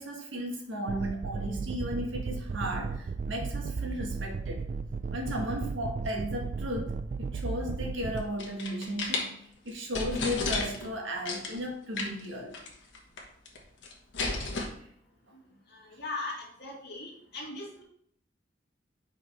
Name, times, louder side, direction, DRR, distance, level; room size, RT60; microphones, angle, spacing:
voice 1, 0.0-4.6 5.1-6.9 7.2-9.3 9.6-12.6, equal, 90° right, 1 dB, 1.4 m, -35 dB
sound 1, 0.9-8.3, right 4 dB, 40° right, 0.3 m, -35 dB
sound 2, 8.2-9.3 9.7-9.8 9.9-10.9 11.3-11.6 12.0-12.3 12.5-12.7 12.9-13.6 13.8-14.7, left 3 dB, 75° left, 1.2 m, -32 dB
voice 2, 15.7-17.8, left 2 dB, 60° left, -2 dB, 2.0 m, -39 dB
5.1 x 5.1 x 4.0 m, 0.67 s
head